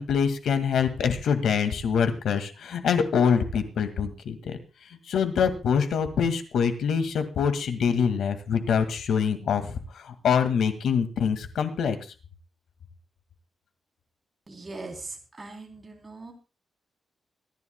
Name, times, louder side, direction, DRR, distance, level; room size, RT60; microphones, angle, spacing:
voice 1, 0.0-4.6 5.1-12.0, left 6 dB, 85° left, 9 dB, 2.0 m, -25 dB
voice 2, 14.5-16.3, right 3 dB, 25° right, 2 dB, 3.3 m, -40 dB
25.0 x 11.0 x 2.2 m, 0.32 s
wide cardioid pair, 120°, 0 cm